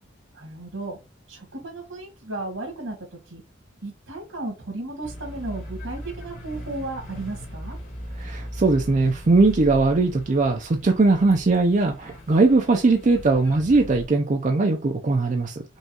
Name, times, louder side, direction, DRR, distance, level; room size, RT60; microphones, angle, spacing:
voice 1, 0.3-1.0 1.3-3.0 3.3-3.4 3.8-7.8, right 2 dB, 80° right, 2.1 m, -34 dB
sound 1, 5.0-14.1, equal, 40° left, 1.4 m, -38 dB
voice 2, 8.2-15.6, right 3 dB, 40° right, 0.4 m, -20 dB
5.4 x 2.3 x 2.8 m
head